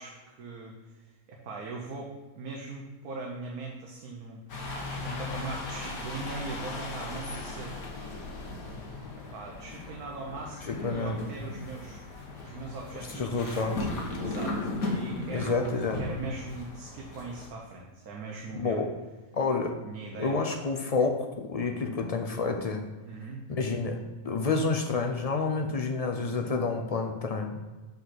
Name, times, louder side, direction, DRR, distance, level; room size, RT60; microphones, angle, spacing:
voice 1, 0.0-7.7 8.6-8.8 9.1-13.7 14.2-18.9 19.8-20.4 23.0-23.4, right 3 dB, 80° right, -1 dB, 1.4 m, -41 dB
sound 1, 4.5-17.5, left 3 dB, 75° left, 1.6 m, -37 dB
voice 2, 10.7-11.2 13.1-13.9 15.3-16.0 18.5-18.9 19.3-19.7 20.2-22.8 23.5-27.6, left 4 dB, 40° left, 4 dB, 0.5 m, -29 dB
5.9 x 5.6 x 5.9 m, 1.2 s
omnidirectional pair, 1.5 m